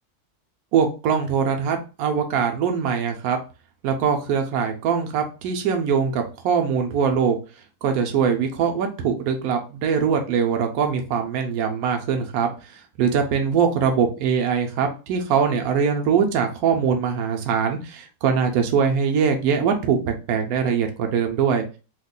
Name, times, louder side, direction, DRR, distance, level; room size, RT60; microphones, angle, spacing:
voice 1, 0.7-3.4 3.8-7.4 7.8-21.6, right 6 dB, 75° right, 4 dB, 1.1 m, -22 dB
2.9 x 2.3 x 3.7 m, 0.33 s
omnidirectional pair, 1.6 m